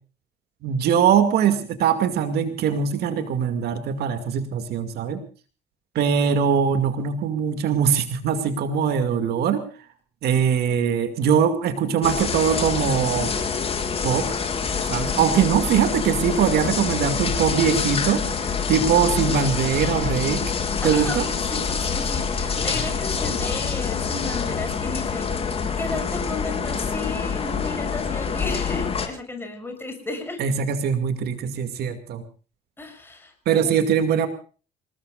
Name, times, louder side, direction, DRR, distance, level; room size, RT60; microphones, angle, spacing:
voice 1, 0.6-5.2 5.9-9.7 10.2-13.4 14.0-14.3 14.9-20.4 20.8-21.3 30.4-32.2 33.5-34.3, right 7 dB, 70° right, 8 dB, 2.3 m, -22 dB
sound 1, 12.0-29.1, left 6 dB, 35° left, 3.7 m, -26 dB
voice 2, 20.8-30.4 32.8-33.8, left 2 dB, 15° left, 5 dB, 6.7 m, -34 dB
28.0 x 19.0 x 2.5 m, 0.37 s
cardioid pair, 110°, 17 cm